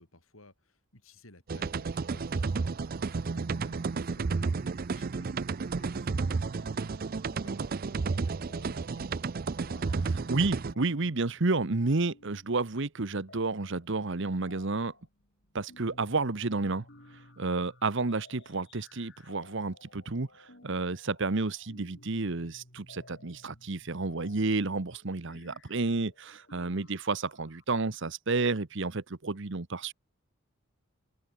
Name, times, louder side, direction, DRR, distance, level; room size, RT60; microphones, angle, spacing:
voice 1, 0.0-2.6 3.0-9.2 24.2-24.5 26.7-27.1, left 2 dB, 85° left, 5.4 m, -57 dB
sound 1, 1.5-10.7, right 4 dB, 45° right, 0.5 m, -32 dB
sound 2, 8.5-9.1 9.4-27.6, left 2 dB, 55° left, 6.7 m, -57 dB
voice 2, 10.1-14.9 15.5-16.8 17.4-20.3 20.6-29.9, right 3 dB, 60° right, 1.1 m, -31 dB
open air
head